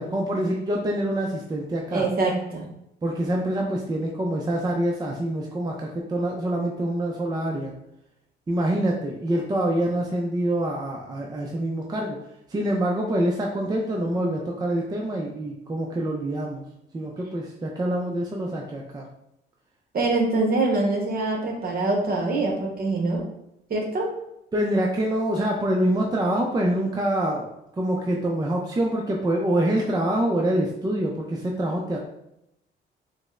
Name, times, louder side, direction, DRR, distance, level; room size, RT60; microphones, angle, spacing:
voice 1, 0.0-2.1 3.0-7.7 8.5-12.2 12.5-16.6 16.9-19.1 24.5-27.5 27.8-32.0, right 1 dB, 20° right, 0 dB, 0.4 m, -25 dB
voice 2, 1.9-2.6 19.9-23.3 23.7-24.1, right 2 dB, 50° right, 0 dB, 1.0 m, -24 dB
5.0 x 2.0 x 2.4 m, 0.82 s
cardioid pair, 90°, 20 cm